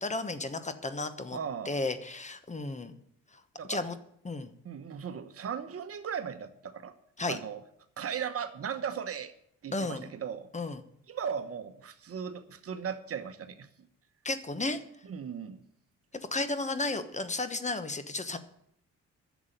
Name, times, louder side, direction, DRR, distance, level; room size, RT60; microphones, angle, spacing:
voice 1, 0.0-1.4 1.6-2.9 3.7-4.0 4.2-4.5 7.2-7.4 9.7-10.1 10.5-10.8 14.2-14.8 16.1-18.4, left 2 dB, 25° left, 11 dB, 1.1 m, -33 dB
voice 2, 1.3-1.8 3.6-3.8 4.6-6.9 7.3-7.6 8.0-9.3 9.6-10.5 11.1-13.7 15.0-15.6, right 7 dB, 50° right, 10 dB, 1.1 m, -37 dB
11.0 x 7.2 x 9.2 m, 0.71 s
cardioid pair, 90°, 30 cm